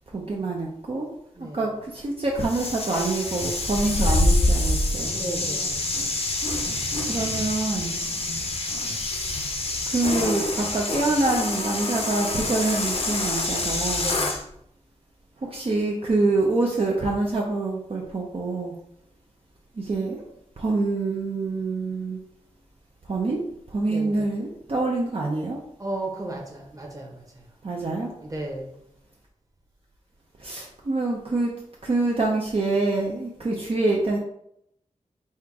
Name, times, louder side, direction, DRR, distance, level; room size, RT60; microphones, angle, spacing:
voice 1, 0.1-1.1 1.5-5.1 6.7-8.0 9.9-14.1 15.4-18.8 19.7-20.3 20.6-22.2 23.0-23.4 23.7-25.6 27.6-28.1 30.4-31.5 31.8-34.2, right 2 dB, 50° right, -2 dB, 0.7 m, -26 dB
voice 2, 1.4-1.7 5.0-5.8 14.0-14.4 23.9-24.3 25.8-27.5 28.2-28.8, right 1 dB, 25° right, 0 dB, 1.1 m, -34 dB
sound 1, 2.4-14.4, left 2 dB, 50° left, 0.7 m, -26 dB
4.3 x 2.4 x 4.7 m, 0.74 s
wide cardioid pair, 100°, 13 cm